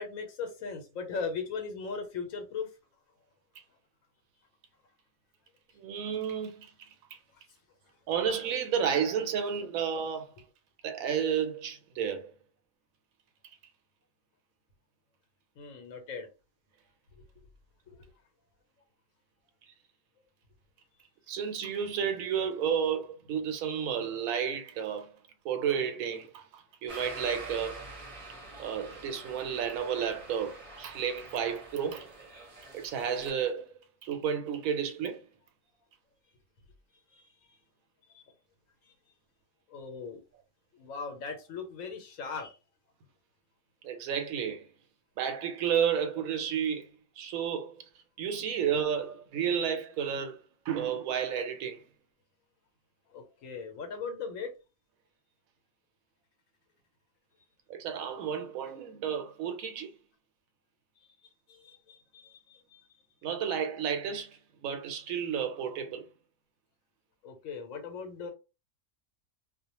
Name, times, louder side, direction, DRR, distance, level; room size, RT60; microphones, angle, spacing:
voice 1, 0.0-2.7 15.6-16.3 37.1-37.3 38.1-38.2 38.8-38.9 39.7-40.2 40.7-42.6 53.1-54.5 61.5-62.8 67.2-68.3, left 5 dB, 80° left, 1.0 m, -38 dB
voice 2, 5.8-6.7 7.1-7.2 8.1-10.3 10.8-12.3 21.3-25.1 25.4-27.9 28.6-32.1 32.7-33.7 34.0-35.2 43.8-44.7 45.2-46.9 47.2-47.8 48.2-50.4 50.7-51.8 57.7-59.9 63.2-66.1, right 8 dB, 90° right, 1.0 m, -32 dB
sound 1, 26.9-33.3, right 2 dB, 35° right, 0.6 m, -46 dB
2.4 x 2.0 x 2.8 m
omnidirectional pair, 1.4 m